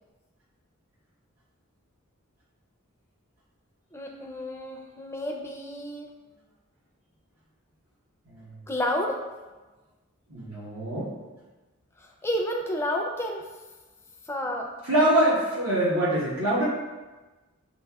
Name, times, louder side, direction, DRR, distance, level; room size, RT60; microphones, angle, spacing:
voice 1, 3.9-6.1 8.7-9.2 12.0-13.5 14.3-14.7, left 1 dB, 10° left, 1 dB, 0.4 m, -30 dB
voice 2, 10.3-11.1 14.9-16.6, right 1 dB, 85° right, -6 dB, 1.0 m, -24 dB
7.2 x 2.8 x 2.3 m, 1.2 s
head